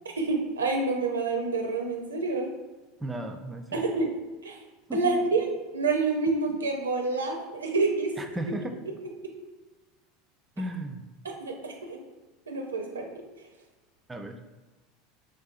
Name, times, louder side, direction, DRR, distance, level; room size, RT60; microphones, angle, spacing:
voice 1, 0.2-2.5 3.7-4.1 4.4-4.6 4.9-5.5 5.7-8.1 11.2-12.0 12.5-13.1, right 3 dB, 85° right, 2 dB, 0.4 m, -27 dB
voice 2, 3.0-3.8 4.9-5.3 8.2-8.8 10.6-11.0 14.1-14.4, right 1 dB, 15° right, 5 dB, 0.3 m, -35 dB
3.4 x 2.5 x 2.4 m, 1.2 s
hypercardioid pair, 80°, 0 cm